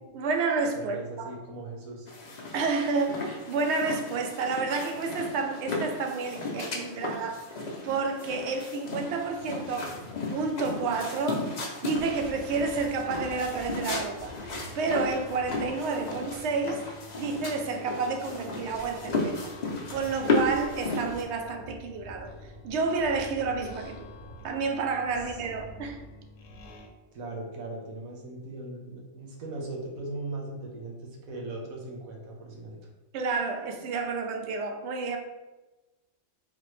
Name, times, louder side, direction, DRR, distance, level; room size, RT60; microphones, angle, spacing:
voice 1, 0.1-1.3 2.5-7.4 7.8-9.9 10.3-16.8 17.2-19.5 19.9-24.1 24.4-26.0 33.1-35.2, right 4 dB, 65° right, 4 dB, 0.7 m, -30 dB
voice 2, 0.7-2.1 27.1-32.9, right 2 dB, 85° right, -1 dB, 1.3 m, -39 dB
sound 1, 2.1-21.2, left 3 dB, 45° left, 0.5 m, -34 dB
sound 2, 11.9-26.9, left 1 dB, 80° left, 1.0 m, -47 dB
4.0 x 2.9 x 3.1 m, 1.1 s
omnidirectional pair, 1.4 m